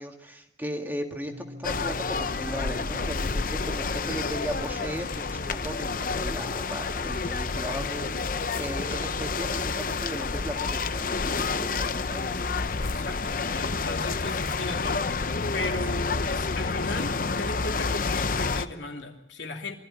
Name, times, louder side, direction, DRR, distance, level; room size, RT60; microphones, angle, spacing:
voice 1, 0.0-1.3 1.6-12.3, equal, 10° right, 3 dB, 1.9 m, -37 dB
sound 1, 1.3-11.4, left 1 dB, 80° right, 1.1 m, -48 dB
sound 2, 1.6-18.6, left 4 dB, 45° left, 0.7 m, -29 dB
voice 2, 12.8-15.0 15.5-19.8, left 2 dB, 80° left, 2 dB, 2.7 m, -36 dB
24.0 x 14.0 x 8.7 m, 0.88 s
head